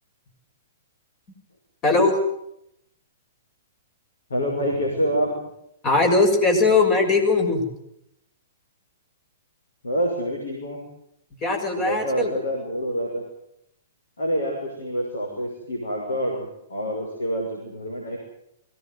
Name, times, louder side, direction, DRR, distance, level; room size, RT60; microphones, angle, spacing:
voice 1, 1.8-2.1 5.8-7.6 11.4-12.3, left 3 dB, 25° left, 4 dB, 6.7 m, -19 dB
voice 2, 4.3-5.4 9.8-10.8 11.8-13.2 14.2-18.2, equal, 70° left, 0 dB, 6.5 m, -27 dB
22.0 x 18.0 x 9.6 m, 0.78 s
figure-of-eight pair, 110°, 0 cm